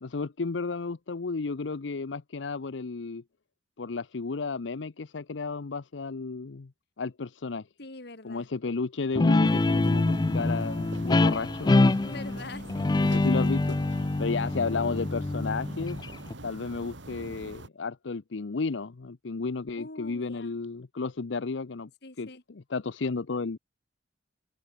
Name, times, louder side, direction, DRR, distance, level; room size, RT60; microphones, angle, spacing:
voice 1, 0.0-3.2 3.8-6.7 7.0-7.7 8.2-11.8 13.0-16.0 16.4-21.9 22.2-23.6, left 4 dB, 85° left, 0.7 m, -33 dB
voice 2, 7.8-8.5 12.0-12.9 19.8-20.5 22.0-22.4, left 2 dB, 65° left, 2.3 m, -44 dB
Guitar, 9.1-16.3, left 2 dB, 25° left, 0.4 m, -25 dB
sound 1, 9.4-17.7, right 2 dB, 85° right, 2.9 m, -44 dB
open air
head